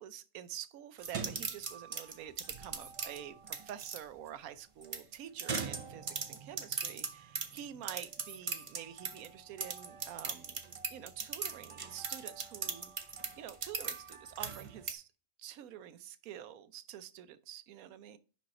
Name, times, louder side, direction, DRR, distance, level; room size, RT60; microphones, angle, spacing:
voice 1, 0.0-10.6 10.9-12.9 13.4-15.1 15.4-18.2, right 10 dB, 90° right, 1.1 m, -47 dB
sound 1, 1.0-4.0 4.8-9.3 9.6-14.9, right 5 dB, 40° right, 0.5 m, -39 dB
5.6 x 5.2 x 4.2 m
omnidirectional pair, 1.4 m